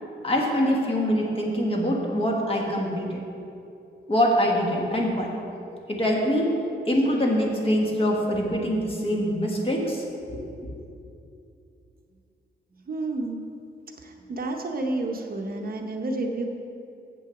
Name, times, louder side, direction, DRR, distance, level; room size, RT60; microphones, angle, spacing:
voice 1, 0.2-3.2 4.1-5.3 5.9-6.5 6.9-10.4, equal, 30° left, -1 dB, 1.4 m, -24 dB
voice 2, 12.9-13.5 14.0-16.5, right 2 dB, 50° right, 2 dB, 0.8 m, -30 dB
7.7 x 6.0 x 7.0 m, 2.6 s
wide cardioid pair, 130°, 19 cm